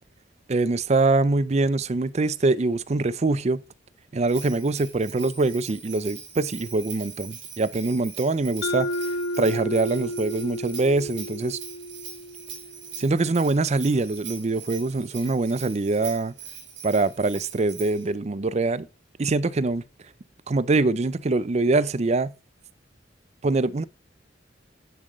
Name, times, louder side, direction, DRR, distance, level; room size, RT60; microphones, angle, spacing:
voice 1, 0.5-3.6 4.1-8.9 9.4-11.6 13.0-16.3 16.8-18.9 19.2-19.8 20.5-22.3 23.4-23.8, right 3 dB, 35° right, 0.5 m, -24 dB
Bell, 4.3-18.1, right 7 dB, 80° right, 3.7 m, -42 dB
Mallet percussion, 8.6-13.2, left 1 dB, 70° left, 1.0 m, -32 dB
10.0 x 7.7 x 3.1 m
head